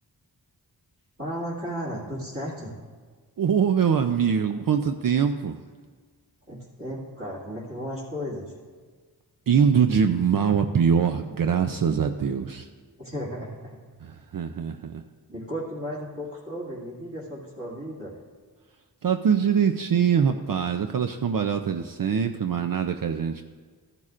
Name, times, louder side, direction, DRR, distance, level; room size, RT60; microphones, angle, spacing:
voice 1, 1.2-2.7 6.5-8.5 13.0-13.8 15.3-18.1, equal, 35° right, -8 dB, 2.3 m, -34 dB
voice 2, 3.4-5.6 9.5-12.7 14.0-15.0 19.0-23.4, right 7 dB, 55° right, 6 dB, 0.5 m, -23 dB
14.0 x 10.5 x 2.5 m, 1.5 s
wide cardioid pair, 80°, 40 cm